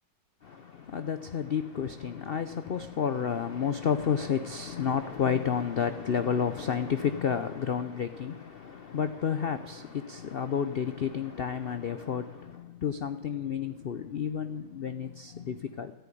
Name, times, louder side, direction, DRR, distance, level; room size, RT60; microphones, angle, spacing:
voice 1, 0.4-15.9, left 7 dB, 75° left, 0.5 m, -31 dB
13.5 x 10.5 x 9.9 m
omnidirectional pair, 1.9 m